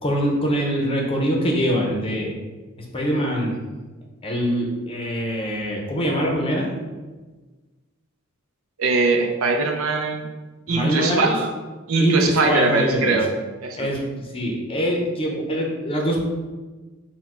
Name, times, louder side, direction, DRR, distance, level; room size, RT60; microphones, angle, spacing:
voice 1, 0.0-2.3 2.8-3.6 4.2-6.7 10.7-11.3 12.0-13.2 13.8-16.2, equal, 25° left, 0 dB, 0.7 m, -23 dB
voice 2, 8.8-10.3 10.7-11.5 11.9-13.3 13.6-13.9, right 3 dB, 75° right, 3 dB, 0.5 m, -21 dB
4.3 x 2.2 x 4.3 m, 1.3 s
head